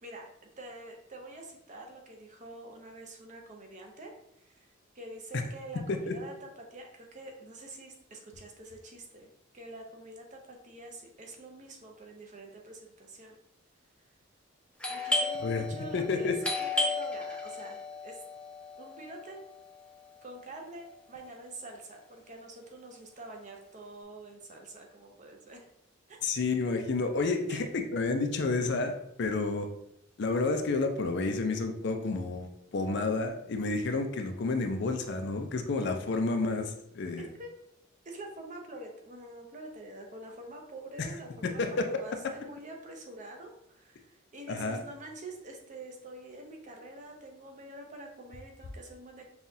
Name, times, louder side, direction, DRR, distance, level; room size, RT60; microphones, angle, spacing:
voice 1, 0.0-13.4 14.9-18.2 18.8-19.4 20.2-25.7 26.1-26.2 27.2-27.7 37.2-37.5 38.0-49.3, right 1 dB, 35° right, 2 dB, 0.6 m, -46 dB
Doorbell, 14.8-20.3, left 2 dB, 5° left, 0.6 m, -34 dB
voice 2, 15.9-16.3 26.2-29.7 30.2-37.3 41.4-41.9 44.5-44.8, left 3 dB, 55° left, 6 dB, 0.4 m, -30 dB
5.5 x 2.4 x 2.7 m, 0.78 s
head